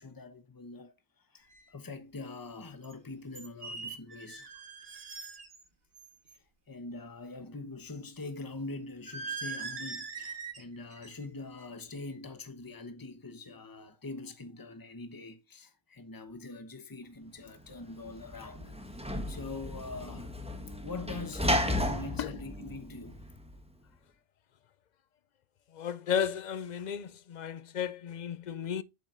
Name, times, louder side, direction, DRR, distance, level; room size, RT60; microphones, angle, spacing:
voice 1, 0.0-4.5 6.3-20.3 20.8-23.2, left 3 dB, 20° left, 1.0 m, -44 dB
sound 1, 1.5-1.6 2.8-2.9 3.3-5.6 5.9-6.3 9.1-10.6 10.9-11.3 11.6-11.9, right 4 dB, 60° right, 1.6 m, -41 dB
Sliding door / Slam, 17.7-23.6, left 1 dB, 5° right, 1.1 m, -34 dB
voice 2, 25.8-28.8, left 8 dB, 60° left, 0.5 m, -33 dB
8.3 x 7.1 x 2.5 m
omnidirectional pair, 1.2 m